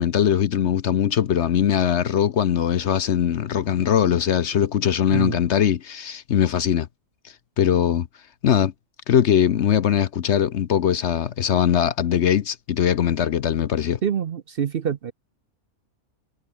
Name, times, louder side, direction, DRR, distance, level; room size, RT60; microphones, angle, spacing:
voice 1, 0.0-6.9 7.6-8.1 8.4-8.7 9.1-14.0, left 9 dB, 60° left, 0.9 m, -21 dB
voice 2, 14.0-15.1, right 8 dB, 55° right, 0.7 m, -25 dB
omnidirectional pair, 1.5 m